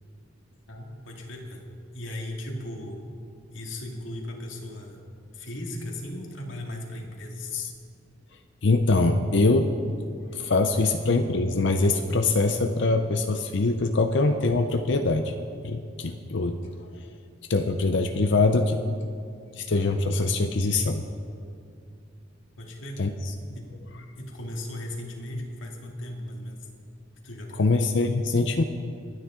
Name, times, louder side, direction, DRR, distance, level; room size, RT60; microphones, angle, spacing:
voice 1, 0.7-1.7 1.9-3.0 3.5-5.0 5.3-7.6 10.8-10.9 22.6-23.2 23.6-23.9 24.2-26.7 27.2-27.6, left 1 dB, 85° left, 0 dB, 2.2 m, -37 dB
voice 2, 8.6-9.7 10.3-15.3 15.6-16.6 17.5-18.8 19.6-21.0 23.0-23.1 27.6-28.6, left 3 dB, 65° left, 6 dB, 0.7 m, -23 dB
24.5 x 10.0 x 3.8 m, 2.4 s
head